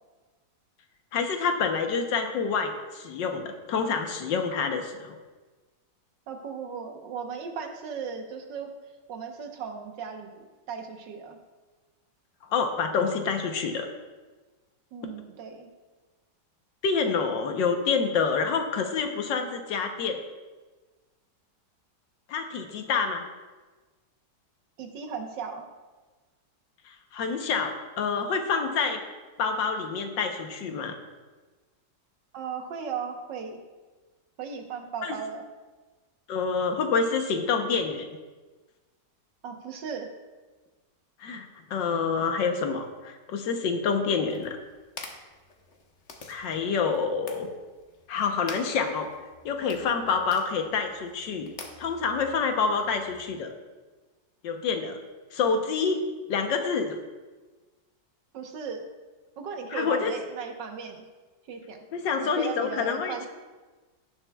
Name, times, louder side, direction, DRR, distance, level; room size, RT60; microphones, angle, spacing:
voice 1, 1.1-5.2 12.5-13.9 16.8-20.2 22.3-23.2 26.8-29.0 29.4-31.0 35.0-35.1 36.3-38.1 41.2-44.6 46.3-47.5 48.1-49.1 49.4-51.5 51.8-53.5 54.4-55.0 55.3-56.0 56.3-57.0 59.7-60.1 61.9-63.3, left 5 dB, 80° left, 5 dB, 1.6 m, -27 dB
voice 2, 6.3-8.7 9.1-11.4 14.9-15.7 24.8-25.7 32.3-33.6 34.4-35.4 39.4-40.1 58.3-58.9 59.4-61.0 61.5-61.8 62.2-63.2, right 6 dB, 80° right, 4 dB, 1.7 m, -36 dB
sound 1, 44.2-53.2, left 3 dB, 45° left, 1.1 m, -48 dB
17.0 x 7.1 x 2.3 m, 1.3 s
omnidirectional pair, 1.9 m